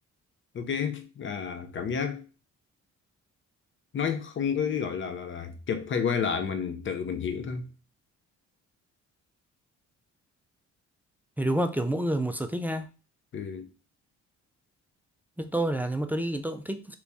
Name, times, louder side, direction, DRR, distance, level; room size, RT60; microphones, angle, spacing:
voice 1, 0.5-2.3 3.9-7.7 13.3-13.7, left 6 dB, 40° left, 0.6 m, -30 dB
voice 2, 11.4-12.9 15.4-17.0, right 1 dB, 5° right, 0.3 m, -28 dB
3.0 x 2.6 x 3.4 m
cardioid pair, 90°, 30 cm